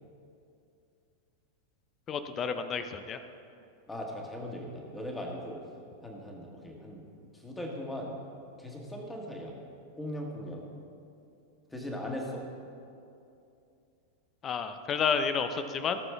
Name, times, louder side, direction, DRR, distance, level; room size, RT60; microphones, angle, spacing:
voice 1, 2.1-3.2 14.4-16.0, left 6 dB, 25° left, 9 dB, 0.7 m, -30 dB
voice 2, 3.9-5.6 6.0-7.0 7.3-8.2 8.6-9.5 10.0-10.6 11.7-12.4, left 1 dB, 10° left, 0 dB, 1.9 m, -39 dB
18.0 x 6.9 x 3.6 m, 2.6 s
figure-of-eight pair, 90°, 0 cm